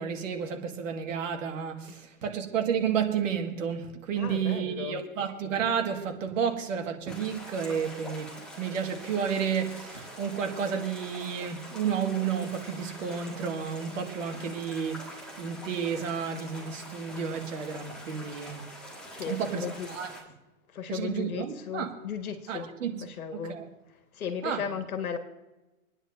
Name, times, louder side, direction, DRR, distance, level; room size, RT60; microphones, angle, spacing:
voice 1, 0.0-18.7 19.3-20.1 20.9-21.9 22.5-23.0 23.3-23.7 24.4-24.7, right 7 dB, 60° right, 2.0 m, -31 dB
voice 2, 4.1-5.0 19.2-19.9 20.7-22.7 23.0-23.6 24.1-25.2, left 7 dB, 80° left, 1.8 m, -35 dB
sound 1, 7.1-20.2, equal, ahead, 1.9 m, -45 dB
27.0 x 9.9 x 2.7 m
hypercardioid pair, 140°, 42 cm